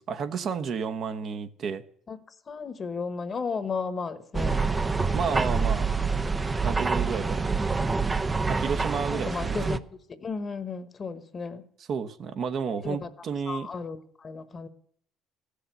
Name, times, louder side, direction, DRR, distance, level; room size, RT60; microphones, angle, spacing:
voice 1, 0.0-1.8 5.1-5.9 6.6-7.4 8.5-9.6 11.9-13.7, right 6 dB, 55° right, 9 dB, 1.0 m, -31 dB
voice 2, 2.5-4.6 9.1-11.6 12.8-13.1 13.5-14.7, left 5 dB, 35° left, 12 dB, 1.2 m, -34 dB
sound 1, 4.3-9.8, right 4 dB, 20° right, 0.6 m, -26 dB
15.0 x 6.6 x 9.2 m, 0.63 s
cardioid pair, 95°, 0 cm